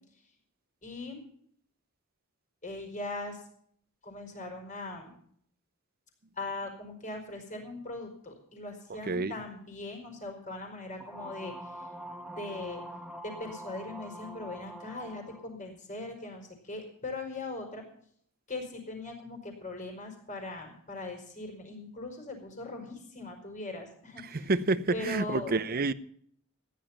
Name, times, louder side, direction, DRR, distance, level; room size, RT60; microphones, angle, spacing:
voice 1, 0.8-1.2 2.6-3.5 4.0-5.1 6.3-11.9 12.2-12.8 13.2-17.8 18.5-24.5 24.9-25.6, left 2 dB, 35° left, 5.0 m, -40 dB
sound 1, 11.0-15.5, right 1 dB, 5° right, 1.1 m, -44 dB
voice 2, 24.2-25.9, right 3 dB, 45° right, 0.7 m, -28 dB
15.5 x 11.0 x 5.8 m
head